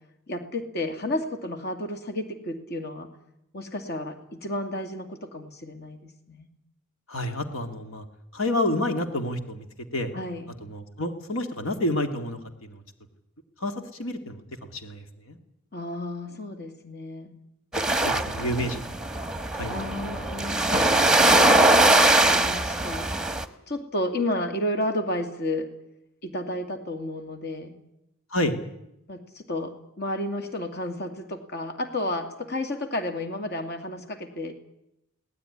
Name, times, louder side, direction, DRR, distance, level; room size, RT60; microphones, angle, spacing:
voice 1, 0.3-3.1 3.5-6.5 10.1-10.5 15.7-17.3 19.7-21.1 22.2-23.1 23.7-25.7 26.2-27.8 29.1-34.6, left 1 dB, 55° left, 7 dB, 2.6 m, -32 dB
voice 2, 7.1-8.0 8.3-9.7 9.9-10.1 10.6-12.8 13.6-13.7 14.0-15.4 18.0-18.8 19.3-19.7 20.0-20.1 20.6-20.9 28.3-28.6, left 1 dB, 80° left, 6 dB, 2.2 m, -29 dB
sound 1, 17.7-23.4, right 2 dB, 5° right, 1.3 m, -21 dB
23.0 x 18.5 x 9.9 m, 0.83 s
head